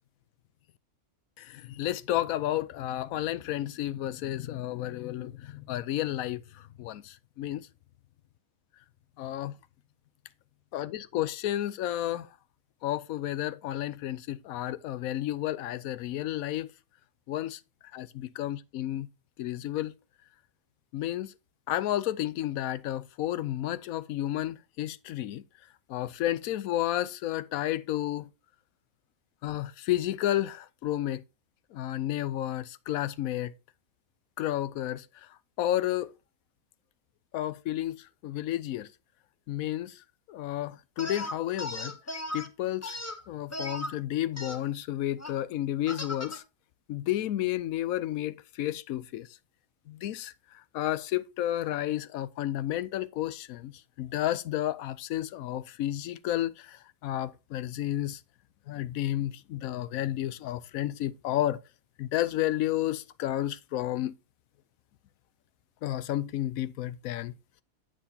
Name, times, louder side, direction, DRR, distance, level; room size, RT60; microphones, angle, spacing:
voice 1, 1.4-7.7 9.2-9.5 10.7-12.3 12.8-16.7 17.3-17.6 17.9-19.1 19.4-19.9 20.9-21.3 21.7-25.4 25.9-28.3 29.4-31.2 31.7-33.5 34.4-35.3 35.6-36.1 37.3-38.9 39.5-41.9 42.3-43.0 43.3-46.4 46.9-49.3 49.9-50.3 50.7-53.7 54.0-58.2 58.7-61.6 62.0-64.1 65.8-67.3, left 13 dB, 85° left, 1.0 m, -31 dB
sound 1, 41.0-42.5 42.8-43.9 44.4-44.6 45.2-45.3 45.9-46.4, left 1 dB, 15° left, 0.5 m, -37 dB
8.6 x 7.8 x 2.7 m
omnidirectional pair, 1.4 m